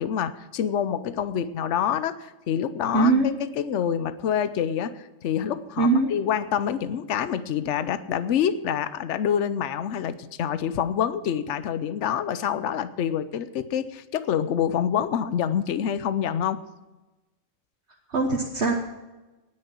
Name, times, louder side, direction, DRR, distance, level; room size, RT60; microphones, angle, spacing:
voice 1, 0.0-16.6, left 9 dB, 65° left, 13 dB, 1.0 m, -27 dB
voice 2, 2.9-3.3 5.8-6.1 18.1-18.7, right 3 dB, 60° right, 0 dB, 1.5 m, -21 dB
18.5 x 6.5 x 6.1 m, 1.1 s
omnidirectional pair, 1.3 m